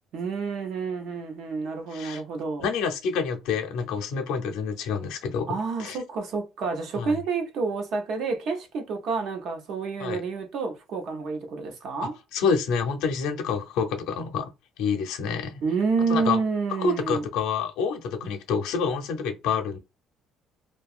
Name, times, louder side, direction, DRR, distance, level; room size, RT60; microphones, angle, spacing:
voice 1, 0.1-2.7 5.5-12.2 15.6-17.2, right 4 dB, 55° right, 0.7 m, -29 dB
voice 2, 1.9-2.2 2.6-6.0 7.0-7.2 10.0-10.2 12.3-14.5 14.8-15.6 16.1-16.4 16.8-19.8, left 6 dB, 85° left, 0.6 m, -28 dB
2.7 x 2.3 x 2.4 m
cardioid pair, 175°, 0 cm